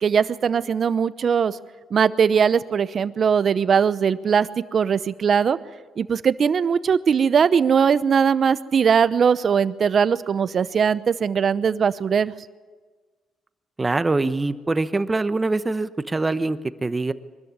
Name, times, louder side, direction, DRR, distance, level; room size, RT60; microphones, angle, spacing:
voice 1, 0.0-1.6 1.9-5.6 6.0-12.3, right 6 dB, 50° right, 15 dB, 0.8 m, -20 dB
voice 2, 13.8-17.1, right 3 dB, 20° right, 12 dB, 1.0 m, -24 dB
23.5 x 13.0 x 9.7 m, 1.4 s
cardioid pair, 90°, 0 cm